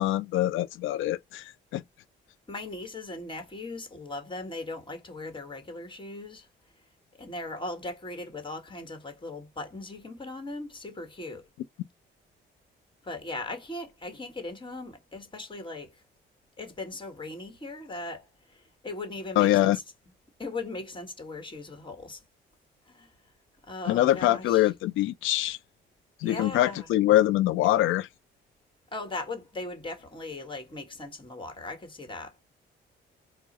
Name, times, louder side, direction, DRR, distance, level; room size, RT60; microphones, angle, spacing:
voice 1, 0.0-1.8 19.4-19.8 23.8-25.6 26.2-28.1, left 14 dB, 90° left, 0.4 m, -24 dB
voice 2, 2.5-6.5 7.2-11.5 13.0-16.0 16.6-19.8 20.4-22.2 22.9-23.1 23.7-24.7 26.2-26.9 28.9-32.3, left 2 dB, 25° left, 1.6 m, -38 dB
4.5 x 2.2 x 4.1 m
cardioid pair, 90°, 20 cm